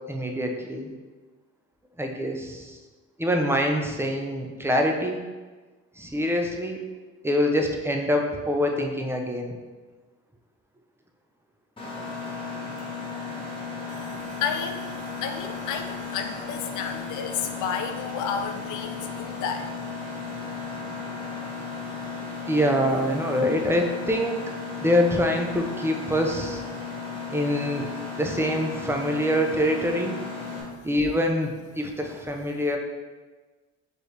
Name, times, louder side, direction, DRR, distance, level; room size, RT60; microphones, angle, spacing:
voice 1, 0.1-0.9 2.0-2.8 3.2-5.2 6.0-6.8 7.2-9.5 22.5-24.4 24.8-26.6 27.3-27.9 28.2-30.1 30.8-32.8, equal, 10° right, 2 dB, 0.5 m, -25 dB
Mechanisms, 11.8-30.6, left 4 dB, 15° left, 1.4 m, -35 dB
voice 2, 13.9-19.7, left 6 dB, 80° left, 6 dB, 0.5 m, -32 dB
4.5 x 3.2 x 3.2 m, 1.3 s
cardioid pair, 90°, 30 cm